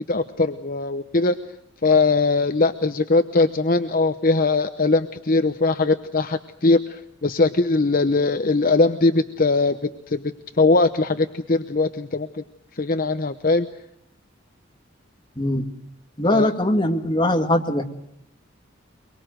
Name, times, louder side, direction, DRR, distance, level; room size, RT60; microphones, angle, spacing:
voice 1, 0.1-1.4 1.8-10.2 10.6-12.3 12.8-13.7 16.3-16.5, left 3 dB, 45° left, 8 dB, 0.9 m, -20 dB
voice 2, 16.2-17.8, left 1 dB, 25° left, 4 dB, 2.1 m, -21 dB
23.5 x 23.5 x 7.8 m, 0.75 s
head